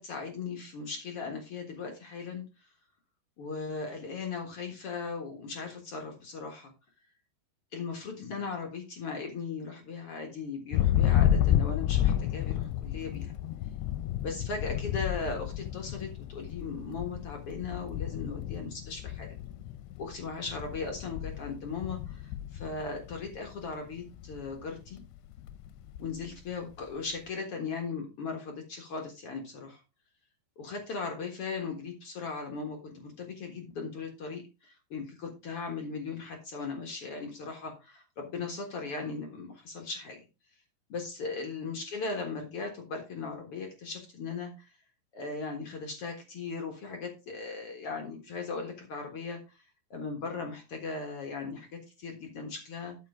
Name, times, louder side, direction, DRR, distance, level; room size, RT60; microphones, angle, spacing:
voice 1, 0.0-2.7 3.4-6.7 7.7-13.3 14.2-19.3 20.0-25.0 26.0-29.8 30.6-40.2 40.9-44.7 45.1-49.6 49.9-53.0, left 4 dB, 65° left, 3 dB, 1.4 m, -38 dB
Thunder, 10.7-23.6 23.9-24.5 24.8-26.3, left 11 dB, 85° left, 2.6 m, -31 dB
12.5 x 6.0 x 3.6 m, 0.27 s
omnidirectional pair, 5.0 m